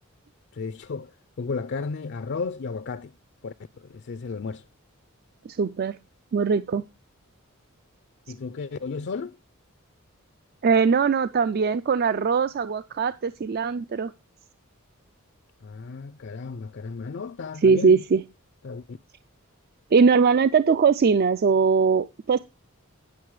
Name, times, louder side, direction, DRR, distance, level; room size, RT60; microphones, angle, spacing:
voice 1, 0.5-3.1 3.4-4.6 8.3-9.4 15.6-18.0 18.6-19.0, left 4 dB, 55° left, 0.4 m, -34 dB
voice 2, 5.5-6.0 6.3-6.8 10.6-14.1 17.6-18.2 19.9-22.4, right 5 dB, 45° right, 0.4 m, -21 dB
10.5 x 6.6 x 4.7 m
head